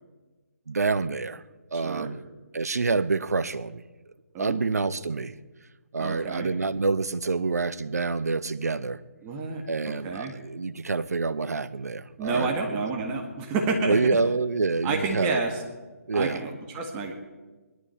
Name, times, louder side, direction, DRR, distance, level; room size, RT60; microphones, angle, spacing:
voice 1, 0.7-1.4 1.7-2.2 2.5-3.9 4.4-5.3 5.9-9.0 9.7-12.9 13.9-15.4 16.1-16.4, right 4 dB, 75° right, 15 dB, 0.8 m, -27 dB
voice 2, 1.7-2.1 4.3-4.6 6.0-6.5 9.2-10.3 12.2-14.2 14.8-15.6 16.1-17.1, right 3 dB, 20° right, 2 dB, 1.8 m, -29 dB
20.5 x 12.0 x 4.5 m, 1.2 s
figure-of-eight pair, 145°, 9 cm